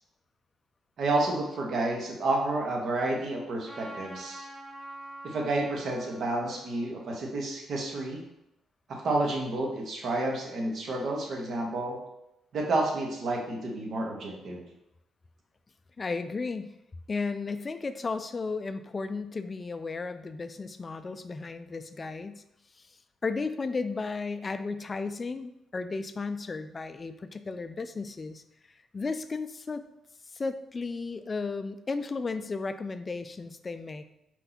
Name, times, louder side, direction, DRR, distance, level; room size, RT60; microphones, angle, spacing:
voice 1, 1.0-4.5 5.2-8.2 8.9-12.0 12.5-14.6, right 2 dB, 60° right, 0 dB, 1.0 m, -30 dB
Trumpet, 3.6-8.3, right 1 dB, 30° right, 0.8 m, -47 dB
voice 2, 16.0-16.8 17.1-22.4 22.8-22.9 23.2-28.4 28.9-29.8 30.3-34.1, left 4 dB, 30° left, 11 dB, 0.3 m, -34 dB
4.5 x 2.7 x 4.0 m, 0.85 s
cardioid pair, 90°, 0 cm